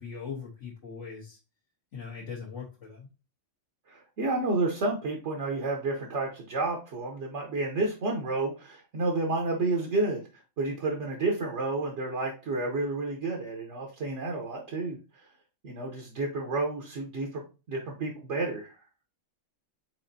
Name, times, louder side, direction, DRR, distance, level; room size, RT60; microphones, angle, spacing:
voice 1, 0.0-1.4 1.9-3.1, left 6 dB, 70° left, -5 dB, 1.5 m, -40 dB
voice 2, 3.9-10.2 10.6-15.0 15.6-17.4 17.7-18.7, right 2 dB, 65° right, 0 dB, 1.2 m, -30 dB
4.8 x 4.0 x 2.7 m, 0.31 s
omnidirectional pair, 1.3 m